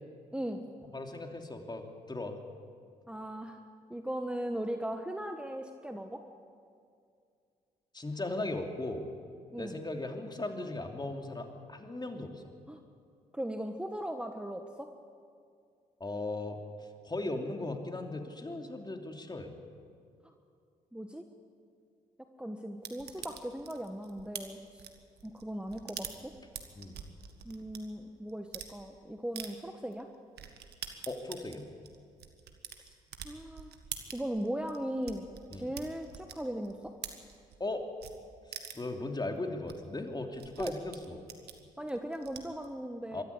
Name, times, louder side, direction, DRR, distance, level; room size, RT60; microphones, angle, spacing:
voice 1, 0.3-0.7 3.1-3.6 3.9-6.2 9.5-9.8 12.7-12.8 13.3-14.9 20.9-21.2 22.4-24.8 25.2-26.3 27.4-30.1 32.8-32.9 33.2-33.7 34.1-36.9 40.6-40.8 41.8-43.2, right 1 dB, 5° right, 5 dB, 1.4 m, -38 dB
voice 2, 0.9-2.4 7.9-9.1 9.6-12.4 16.0-16.6 17.0-19.5 26.8-27.0 31.1-31.7 35.5-35.7 37.6-37.8 38.7-41.3 43.1-43.2, left 2 dB, 25° left, 4 dB, 2.9 m, -37 dB
sound 1, 22.8-27.8 28.3-28.7 29.4-29.5 29.9-30.0 30.4-37.7 38.0-38.1 38.5-39.0 39.4-39.5 39.7-39.8 40.0-42.7, right 9 dB, 70° right, 1.7 m, -45 dB
22.5 x 13.5 x 8.5 m, 2.3 s
hypercardioid pair, 50°, 17 cm